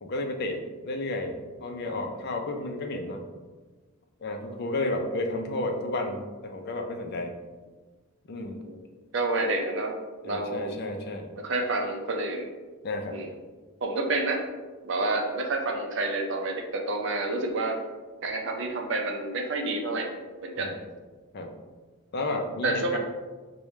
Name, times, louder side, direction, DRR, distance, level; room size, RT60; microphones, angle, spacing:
voice 1, 0.0-3.2 4.2-7.3 8.3-8.6 10.2-11.3 12.8-13.2 20.6-20.8 21.3-21.5 22.1-23.0, left 2 dB, 45° left, 3 dB, 0.4 m, -32 dB
voice 2, 9.1-10.7 11.4-12.5 13.1-13.3 13.8-14.4 14.8-17.8 18.2-20.2 20.4-20.7 22.6-23.0, right 2 dB, 55° right, 3 dB, 0.5 m, -29 dB
4.8 x 2.2 x 3.1 m, 1.3 s
head